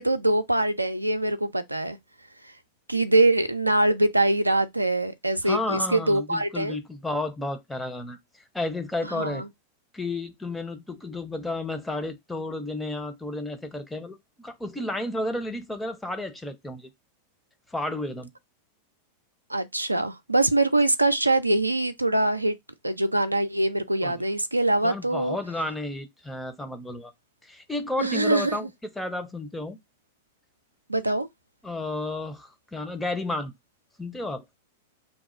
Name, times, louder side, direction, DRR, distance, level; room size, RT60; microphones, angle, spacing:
voice 1, 0.0-2.0 2.9-6.8 9.1-9.4 19.5-22.6 22.8-25.4 28.0-28.6 30.9-31.3, right 2 dB, 85° right, 0.4 m, -23 dB
voice 2, 5.4-8.2 8.5-9.4 9.9-16.9 17.7-18.3 24.0-24.2 24.8-27.1 27.4-28.7 29.0-29.8 31.6-33.5 34.0-34.4, left 2 dB, 5° left, 0.6 m, -32 dB
2.9 x 2.3 x 4.2 m
figure-of-eight pair, 90°, 0 cm